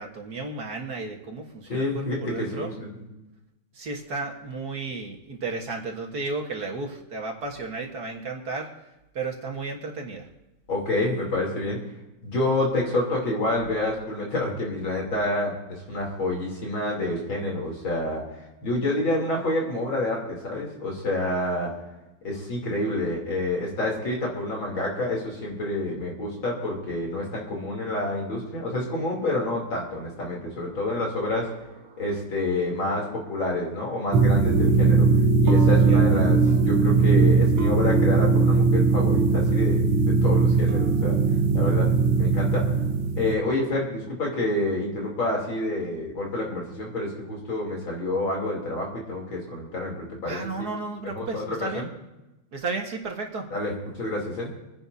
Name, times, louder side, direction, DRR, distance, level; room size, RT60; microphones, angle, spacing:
voice 1, 0.0-2.7 3.7-8.7 9.1-10.3 27.1-27.2 30.2-31.0 31.3-32.0 35.9-36.2 50.3-51.9 52.5-53.5, right 3 dB, 50° right, 1 dB, 2.0 m, -34 dB
voice 2, 1.7-3.0 10.7-11.8 12.2-18.2 18.6-21.7 22.2-31.5 32.0-35.1 35.4-36.4 36.6-41.2 41.5-41.9 42.2-42.7 43.2-50.4 51.1-51.8 53.5-54.5, left 2 dB, 70° left, -2 dB, 4.0 m, -28 dB
sound 1, 34.1-43.3, right 4 dB, 90° right, 2.0 m, -19 dB
27.0 x 10.5 x 2.8 m, 0.98 s
omnidirectional pair, 2.3 m